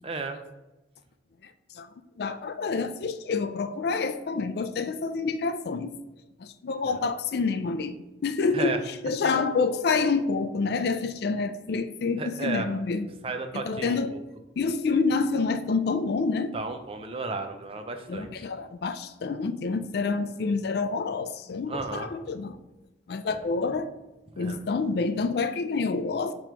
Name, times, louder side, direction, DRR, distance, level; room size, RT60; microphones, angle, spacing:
voice 1, 0.0-0.4 8.5-8.8 12.2-12.7 13.2-14.2 16.5-18.5 21.7-22.1 23.3-23.4 24.3-24.6, right 3 dB, 30° right, 0.5 m, -33 dB
voice 2, 2.2-5.9 6.4-13.1 13.5-14.2 14.6-16.5 18.1-22.6 23.1-23.9 24.4-26.3, left 4 dB, 55° left, 0.3 m, -28 dB
6.9 x 3.0 x 4.5 m
head